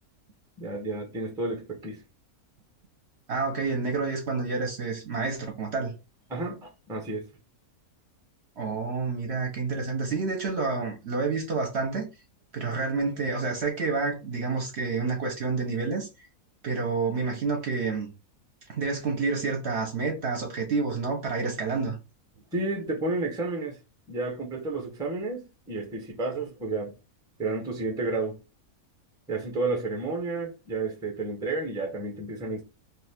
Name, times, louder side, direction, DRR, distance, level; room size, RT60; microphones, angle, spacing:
voice 1, 0.6-2.0 6.3-7.3 22.5-23.8 24.1-26.9 27.4-28.4 29.3-32.6, right 3 dB, 5° right, 0.6 m, -31 dB
voice 2, 3.3-5.9 8.6-12.1 12.5-16.3 16.6-18.1 18.7-22.0, right 4 dB, 55° right, 1.0 m, -29 dB
2.6 x 2.4 x 3.4 m
omnidirectional pair, 1.6 m